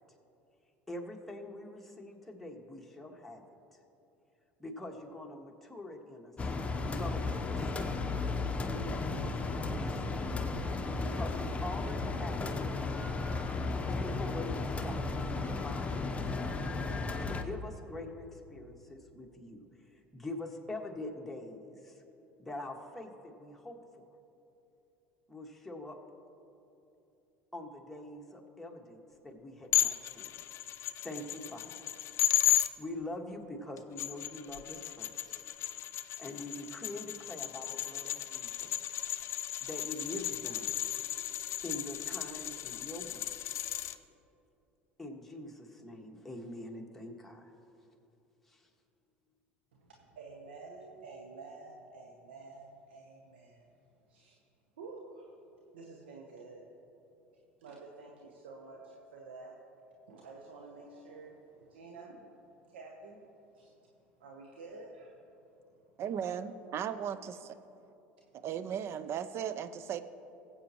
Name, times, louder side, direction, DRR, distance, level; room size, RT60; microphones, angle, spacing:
voice 1, 0.9-3.4 4.6-6.3 6.8-7.8 8.6-10.2 11.0-12.8 13.7-16.2 17.0-19.6 20.1-22.0 22.4-24.0 25.3-26.0 27.5-30.3 31.0-31.9 32.8-35.4 36.2-38.9 39.6-40.7 41.6-43.3 45.0-47.5 48.5-48.7, left 1 dB, 5° left, 0 dB, 1.8 m, -44 dB
sound 1, 6.4-17.4, left 3 dB, 20° left, 0.9 m, -34 dB
sound 2, 29.7-32.7 33.8-44.0, left 13 dB, 50° left, 0.5 m, -34 dB
voice 2, 49.7-53.7 54.1-54.4 54.8-55.3 55.7-56.6 57.6-59.6 60.1-62.3 62.7-63.2 63.5-63.7 64.2-65.2, right 3 dB, 85° right, 0 dB, 1.0 m, -50 dB
voice 3, 66.0-67.6 68.4-70.0, right 8 dB, 50° right, 13 dB, 0.5 m, -36 dB
20.0 x 8.1 x 3.1 m, 2.9 s
hypercardioid pair, 75°, 6 cm